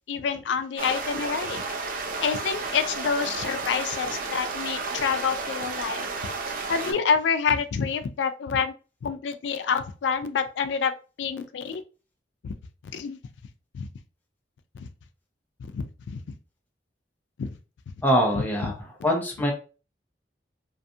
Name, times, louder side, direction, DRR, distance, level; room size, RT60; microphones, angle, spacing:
voice 1, 0.1-1.6 2.2-6.1 6.7-8.7 9.0-10.9 11.2-11.8 12.4-12.5 12.9-13.2 13.7-13.9 14.7-14.9 15.6-16.3 17.4-17.6 18.3-18.7, left 6 dB, 85° left, 10 dB, 0.3 m, -27 dB
sound 1, 0.8-6.9, right 4 dB, 50° right, 0.4 m, -32 dB
voice 2, 18.0-18.7 19.0-19.5, equal, 10° left, 0 dB, 0.5 m, -23 dB
2.5 x 2.3 x 2.6 m, 0.35 s
head